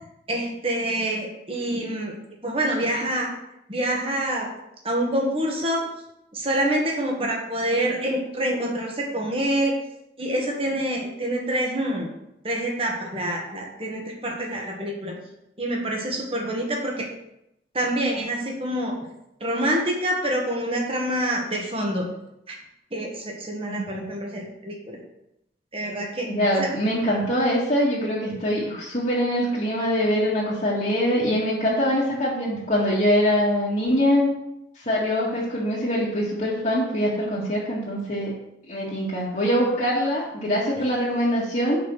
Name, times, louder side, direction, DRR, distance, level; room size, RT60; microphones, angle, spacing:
voice 1, 0.3-2.1 2.4-3.3 3.7-4.5 4.8-5.9 6.3-9.7 10.2-12.1 12.4-15.1 15.6-17.0 17.7-18.9 19.4-22.0 22.5-22.6 22.9-25.0 25.7-26.3 26.6-26.7, right 1 dB, 30° right, 0 dB, 1.6 m, -26 dB
voice 2, 23.7-24.1 26.3-34.3 34.8-38.3 38.7-41.8, equal, 45° left, -7 dB, 1.9 m, -23 dB
5.9 x 5.7 x 6.4 m, 0.84 s
head